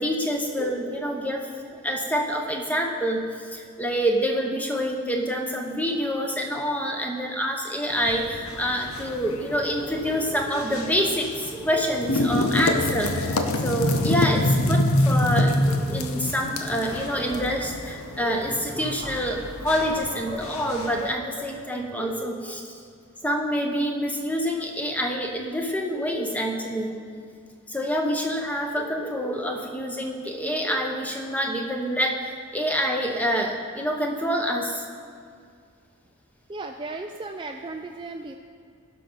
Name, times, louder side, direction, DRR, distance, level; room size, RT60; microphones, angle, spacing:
voice 1, 0.0-1.5 1.8-22.7 23.2-27.0 27.7-34.8, equal, 5° left, 2 dB, 0.9 m, -27 dB
sound 1, 7.9-21.1, left 1 dB, 80° left, 0.8 m, -27 dB
sound 2, 11.5-11.8 12.2-12.3 12.7-13.6 13.8-14.4 15.2-15.3 15.5-15.9 16.4-22.0, left 1 dB, 45° left, 2.3 m, -38 dB
voice 2, 36.5-38.4, right 3 dB, 20° right, 4 dB, 0.4 m, -35 dB
16.5 x 6.1 x 5.5 m, 2.2 s
head